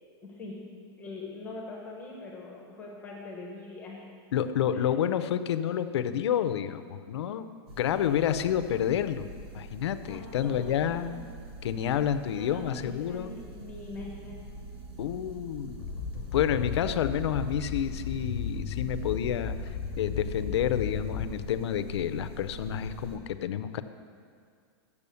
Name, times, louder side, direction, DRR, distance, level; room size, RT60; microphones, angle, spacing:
voice 1, 0.2-0.6 1.0-4.0 4.7-4.9 7.9-8.3 10.0-11.2 12.3-14.4, left 2 dB, 10° left, -2 dB, 1.0 m, -43 dB
voice 2, 4.3-7.5 7.8-9.3 9.5-11.1 11.6-13.3 15.0-15.8 16.3-19.7 20.0-23.8, left 9 dB, 80° left, 12 dB, 0.5 m, -29 dB
sound 1, 7.7-23.2, right 2 dB, 70° right, 1.2 m, -45 dB
sound 2, 15.8-21.6, left 6 dB, 35° left, 0.7 m, -35 dB
7.0 x 6.8 x 6.8 m, 2.2 s
supercardioid pair, 175°, 14 cm